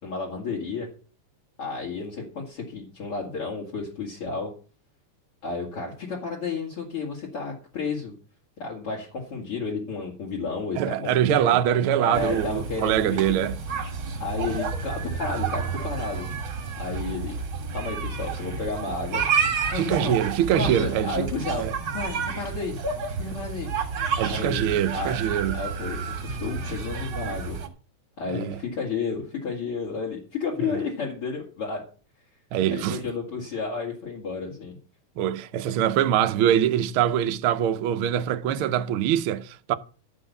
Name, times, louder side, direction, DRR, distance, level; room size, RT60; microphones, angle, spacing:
voice 1, 0.0-0.9 1.6-4.5 5.4-8.1 8.6-11.5 12.0-13.5 14.2-16.3 16.8-17.4 17.7-19.2 19.7-20.1 20.6-21.6 21.9-22.8 23.2-23.7 24.2-25.2 25.5-27.6 28.2-31.8 32.7-34.8, left 4 dB, 50° left, 3.3 m, -32 dB
voice 2, 10.8-13.6 19.7-21.3 21.6-21.7 24.2-25.6 28.3-28.6 32.5-33.0 35.2-39.7, right 10 dB, 80° right, 1.2 m, -23 dB
sound 1, 12.1-27.7, right 5 dB, 45° right, 2.4 m, -30 dB
13.0 x 5.8 x 7.1 m
omnidirectional pair, 3.4 m